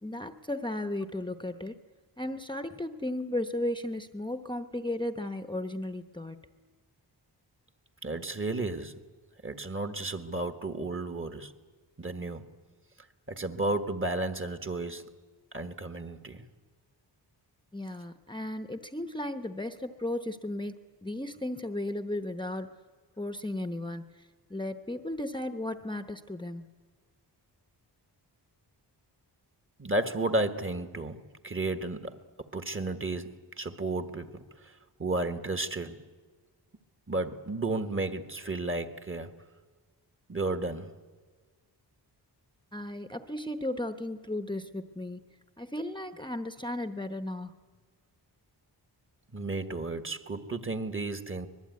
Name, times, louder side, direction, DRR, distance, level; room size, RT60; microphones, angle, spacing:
voice 1, 0.0-1.8 2.2-6.4 17.7-20.8 21.0-22.8 23.2-26.7 42.7-45.2 45.6-47.6, left 1 dB, 10° left, 9 dB, 0.9 m, -35 dB
voice 2, 8.0-9.0 9.4-11.5 12.0-12.5 13.3-15.1 15.5-16.5 29.8-34.7 35.0-36.0 37.1-39.3 40.3-40.9 49.3-51.5, right 2 dB, 30° right, 9 dB, 1.5 m, -33 dB
24.5 x 21.0 x 9.5 m, 1.4 s
wide cardioid pair, 145°, 42 cm